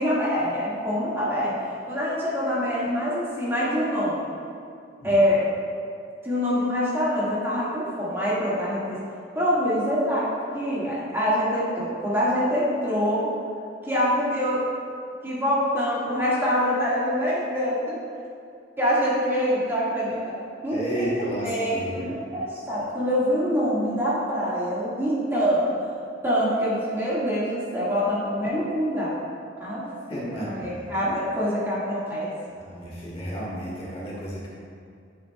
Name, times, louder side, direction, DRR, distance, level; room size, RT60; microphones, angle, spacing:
voice 1, 0.0-1.5 1.9-4.3 5.0-5.4 6.2-9.0 9.3-13.3 13.8-14.6 15.2-18.0 18.8-20.3 20.6-25.9 26.2-29.1 29.6-32.3, equal, 15° right, -8 dB, 1.7 m, -25 dB
voice 2, 20.7-22.2 30.1-30.9 32.7-34.5, right 1 dB, 35° left, -6 dB, 1.5 m, -32 dB
10.5 x 7.1 x 2.2 m, 2.4 s
head